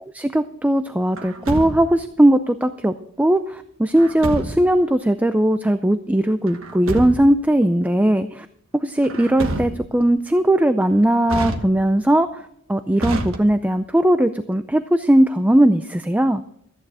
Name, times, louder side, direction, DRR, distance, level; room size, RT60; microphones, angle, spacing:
voice 1, 0.1-8.5 8.7-16.4, right 1 dB, 10° right, 10 dB, 0.4 m, -18 dB
Truck, 1.2-2.1 4.0-4.8 6.5-7.4 9.0-10.1 11.3-12.1 13.0-13.9, right 1 dB, 80° right, 1.3 m, -29 dB
14.0 x 9.8 x 4.9 m, 0.72 s
head